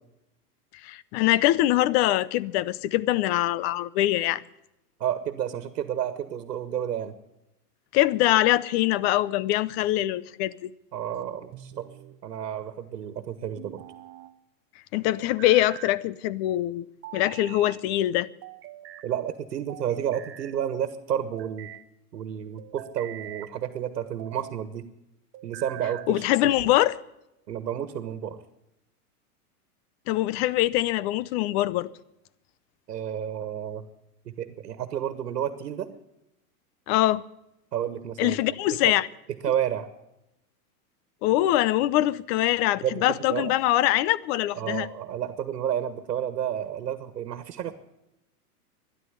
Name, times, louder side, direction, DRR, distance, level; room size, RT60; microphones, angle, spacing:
voice 1, 0.8-4.4 7.9-10.7 14.9-16.8 17.1-18.3 26.1-27.0 30.1-31.9 36.9-37.2 38.2-39.1 41.2-44.9, left 15 dB, 40° left, 0.7 m, -23 dB
voice 2, 5.0-7.1 10.9-11.9 12.2-13.8 19.0-21.7 22.1-24.8 25.4-26.2 27.5-28.4 32.9-33.9 34.4-35.9 37.7-38.4 38.8-38.9 39.4-39.9 42.8-43.5 44.5-47.8, right 10 dB, 85° right, 1.5 m, -31 dB
sound 1, 11.5-12.2 13.6-14.3 15.2-16.0 17.0-17.8 18.4-19.1 19.7-20.6 21.2-21.8 22.6-23.5 24.1-24.6 25.3-26.2, right 14 dB, 30° right, 0.8 m, -43 dB
13.0 x 11.0 x 9.9 m
hypercardioid pair, 125°, 47 cm